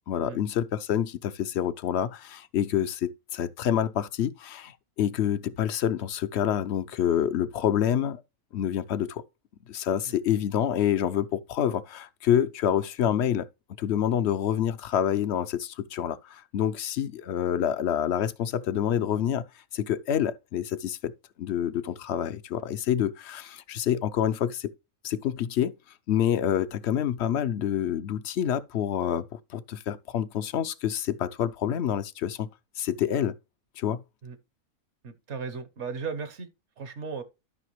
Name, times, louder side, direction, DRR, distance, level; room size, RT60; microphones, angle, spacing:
voice 1, 0.1-8.2 8.5-9.2 9.7-13.5 13.8-19.4 19.7-21.1 21.4-24.7 25.0-25.7 26.1-32.5 32.8-33.4 33.8-34.0, left 10 dB, 60° left, 0.8 m, -27 dB
voice 2, 35.0-36.5 36.8-37.2, right 5 dB, 55° right, 1.2 m, -36 dB
12.5 x 5.8 x 3.1 m
omnidirectional pair, 1.5 m